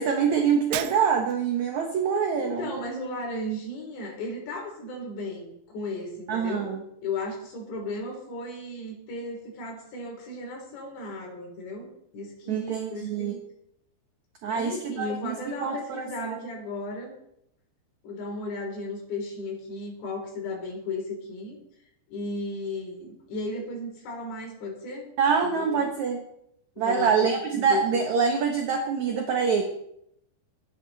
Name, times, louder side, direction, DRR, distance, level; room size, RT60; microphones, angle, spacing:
voice 1, 0.0-2.7 6.3-6.8 12.5-13.3 14.4-15.4 15.6-16.4 25.2-26.2 26.8-29.6, right 6 dB, 60° right, 3 dB, 2.1 m, -25 dB
Shatter, 0.7-1.5, right 13 dB, 80° right, 2.9 m, -35 dB
voice 2, 2.4-6.7 7.0-13.4 14.5-17.1 18.0-21.6 22.1-25.1 25.4-25.8 26.8-27.8, left 2 dB, 85° left, 0 dB, 6.0 m, -35 dB
24.0 x 11.0 x 4.2 m, 0.76 s
omnidirectional pair, 4.9 m